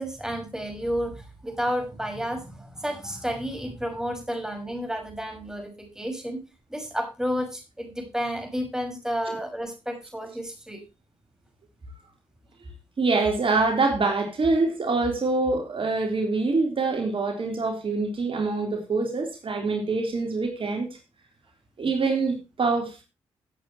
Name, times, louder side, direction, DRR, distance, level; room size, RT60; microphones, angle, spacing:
voice 1, 0.0-6.4 6.7-10.8, equal, 5° right, 5.6 m, -31 dB
voice 2, 13.0-20.9 21.8-23.0, right 3 dB, 55° right, 3.6 m, -25 dB
17.0 x 8.5 x 3.0 m
supercardioid pair, 50°, 11 cm